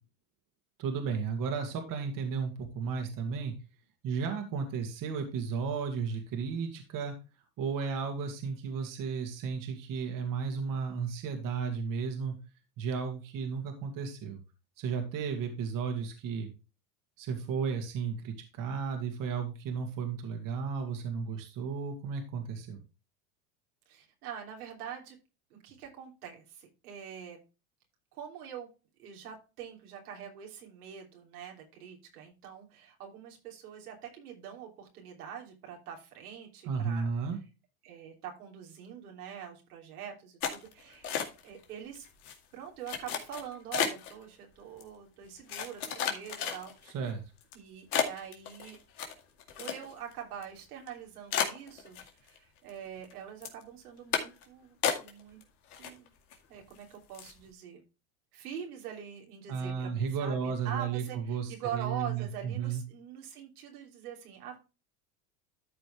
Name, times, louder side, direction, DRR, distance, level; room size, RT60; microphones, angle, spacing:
voice 1, 0.8-3.5 4.0-7.1 7.6-12.3 12.8-14.4 14.8-16.5 17.2-22.8 36.7-37.4 46.9-47.2 59.5-62.8, right 6 dB, 45° right, 4 dB, 2.4 m, -34 dB
voice 2, 23.9-25.2 25.5-27.4 28.1-28.7 29.0-37.1 37.8-41.1 41.4-42.1 42.5-46.7 47.5-48.8 49.6-55.4 55.8-56.1 56.5-57.8 58.3-64.6, right 8 dB, 85° right, 0 dB, 3.3 m, -44 dB
sound 1, 40.4-41.6 41.9-42.3 42.9-44.1 44.8-44.9 45.5-46.9 47.4-47.5 47.9-50.1 50.4-50.5 50.9-51.0 51.3-52.4 52.7-53.1 53.4-53.6 54.1-54.4 54.8-55.4 55.7-56.3 56.7-56.8 57.1-57.4, left 8 dB, 85° left, 2.2 m, -33 dB
13.0 x 5.1 x 3.3 m, 0.29 s
supercardioid pair, 105°, 44 cm